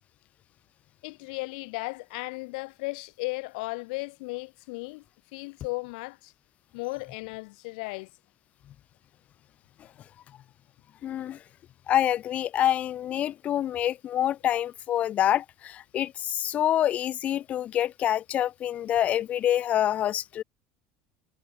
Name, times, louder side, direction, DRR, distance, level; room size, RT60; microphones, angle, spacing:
voice 1, 1.0-5.0 5.3-6.3 6.7-8.1, left 27 dB, 75° left, 5.9 m, -35 dB
voice 2, 11.0-11.4 11.9-20.4, left 11 dB, 30° left, 1.8 m, -26 dB
cardioid pair, 170°, 5 cm